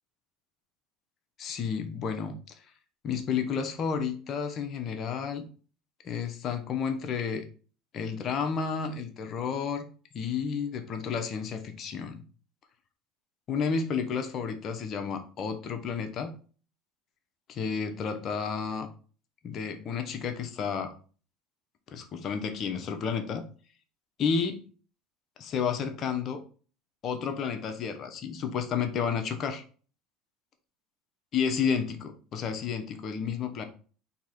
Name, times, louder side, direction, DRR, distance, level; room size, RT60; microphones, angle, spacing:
voice 1, 1.4-2.5 3.0-5.4 6.0-7.4 7.9-9.8 10.1-12.2 13.5-16.3 17.5-18.9 19.4-20.9 21.9-23.4 24.2-24.6 25.4-26.4 27.0-29.6 31.3-33.6, left 6 dB, 45° left, 7 dB, 0.8 m, -31 dB
4.2 x 3.0 x 4.2 m, 0.40 s
supercardioid pair, 100°, 0 cm